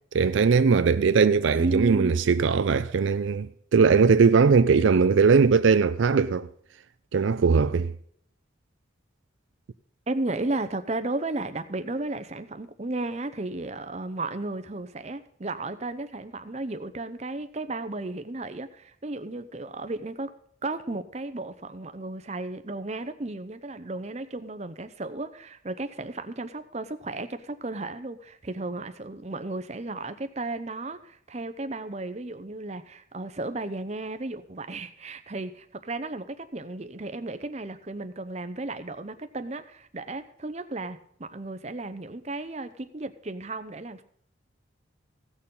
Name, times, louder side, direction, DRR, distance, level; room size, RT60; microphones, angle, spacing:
voice 1, 0.1-6.5 7.1-7.9, right 5 dB, 75° right, 0.4 m, -20 dB
voice 2, 1.6-2.3 10.1-20.3 20.6-44.0, right 2 dB, 35° right, 0.7 m, -34 dB
16.0 x 6.8 x 5.5 m
head